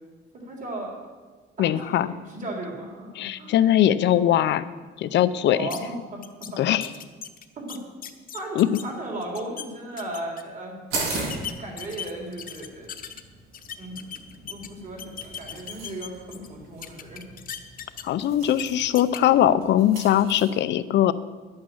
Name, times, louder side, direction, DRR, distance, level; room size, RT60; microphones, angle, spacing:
voice 1, 0.3-0.9 1.6-3.5 5.4-6.8 7.6-7.8 8.3-10.8 11.6-12.9 13.8-14.0 14.5-17.2, right 1 dB, 40° right, -1 dB, 3.7 m, -36 dB
voice 2, 1.6-2.1 3.2-4.7 5.0-5.7 6.6-6.9 8.6-8.7 18.0-21.1, left 11 dB, 65° left, 14 dB, 0.6 m, -21 dB
sound 1, 5.7-5.8 6.2-6.5 6.8-8.8 9.2-9.7 10.0-10.4 11.1-13.2 13.5-14.7 15.0-16.5 16.8-18.2 18.5-18.6 19.0-19.2, left 9 dB, 45° left, 1.0 m, -37 dB
sound 2, 10.9-20.4, right 3 dB, 90° right, 3.8 m, -38 dB
11.0 x 8.8 x 7.2 m, 1.3 s
cardioid pair, 135°, 20 cm